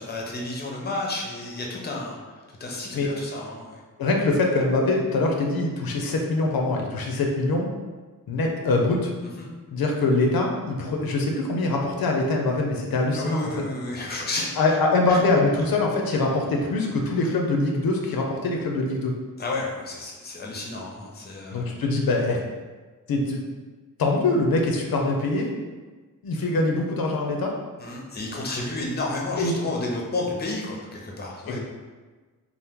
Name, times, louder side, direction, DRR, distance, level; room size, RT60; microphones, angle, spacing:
voice 1, 0.0-3.8 9.2-9.5 13.1-14.5 15.1-15.2 19.4-21.7 27.8-31.6, left 2 dB, 30° left, -1 dB, 0.5 m, -31 dB
voice 2, 4.0-7.7 8.3-9.1 9.7-13.5 14.6-19.2 21.5-22.4 23.1-23.4 24.0-25.5 26.2-27.6 29.4-29.5 31.5-31.6, left 2 dB, 85° left, 1 dB, 0.5 m, -23 dB
2.9 x 2.0 x 3.5 m, 1.3 s
wide cardioid pair, 85°, 35 cm